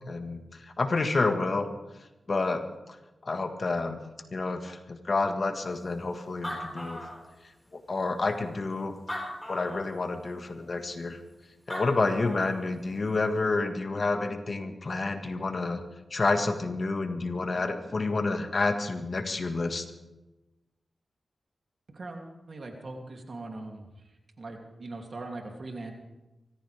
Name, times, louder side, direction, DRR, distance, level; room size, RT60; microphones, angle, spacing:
voice 1, 0.1-1.7 2.3-3.0 3.2-4.0 4.3-7.1 7.7-9.0 9.5-11.2 11.7-15.8 16.1-19.9, left 3 dB, 50° left, 6 dB, 1.7 m, -29 dB
Animal, 6.0-6.1 6.3-7.7 8.3-8.4 9.0-10.0 11.4-11.5 11.7-12.6, left 1 dB, 15° left, 5.0 m, -38 dB
voice 2, 21.9-23.9 24.4-25.9, right 2 dB, 60° right, 2 dB, 2.9 m, -40 dB
25.0 x 14.5 x 3.5 m, 1.0 s
cardioid pair, 55°, 0 cm